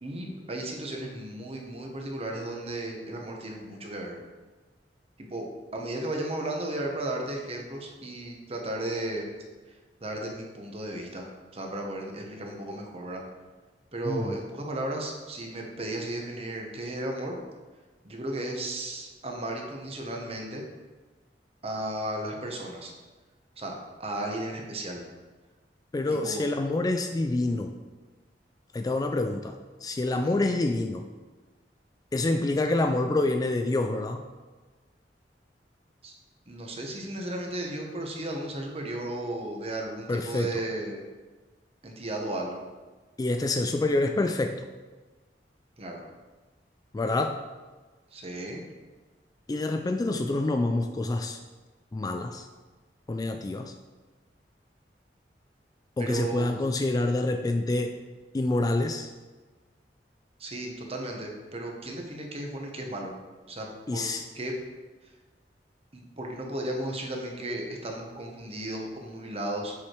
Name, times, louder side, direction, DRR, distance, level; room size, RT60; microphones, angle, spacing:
voice 1, 0.0-4.2 5.2-5.5 5.7-9.2 9.7-9.8 10.0-11.3 11.5-13.2 13.9-17.4 18.0-20.6 21.6-22.9 23.6-23.7 24.0-25.1 26.1-26.5 30.2-30.4 36.0-36.1 36.5-41.0 41.8-42.6 45.8-46.0 48.1-48.7 56.0-56.6 60.4-63.1 63.5-64.1 64.3-64.6 65.9-69.7, right 1 dB, 35° right, 1 dB, 1.1 m, -34 dB
voice 2, 14.1-14.4 25.9-27.8 28.7-31.1 32.1-34.2 40.1-40.6 43.2-44.7 46.9-47.4 49.5-51.4 51.9-52.5 53.1-53.7 56.0-58.0 58.3-59.1 63.9-64.2, left 2 dB, 20° left, 5 dB, 0.3 m, -27 dB
7.1 x 4.9 x 4.6 m, 1.3 s
head